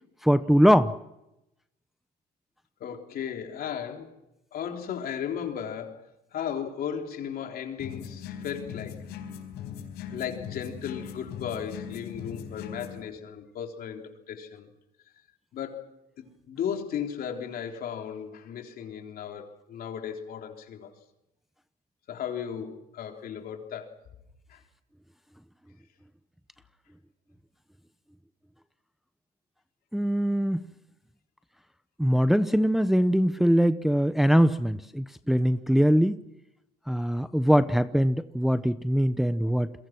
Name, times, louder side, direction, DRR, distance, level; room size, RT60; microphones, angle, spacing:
voice 1, 0.2-0.9 29.9-30.7 32.0-36.2 36.9-39.7, equal, ahead, 11 dB, 0.8 m, -22 dB
voice 2, 2.8-4.1 4.5-6.0 6.3-9.0 10.1-14.7 15.5-15.9 16.2-20.9 22.1-23.9 24.5-24.6, left 8 dB, 60° left, 3 dB, 3.7 m, -35 dB
sound 1, 7.8-13.0, left 8 dB, 80° left, 4.6 m, -40 dB
29.0 x 23.0 x 6.1 m, 0.89 s
cardioid pair, 110°, 17 cm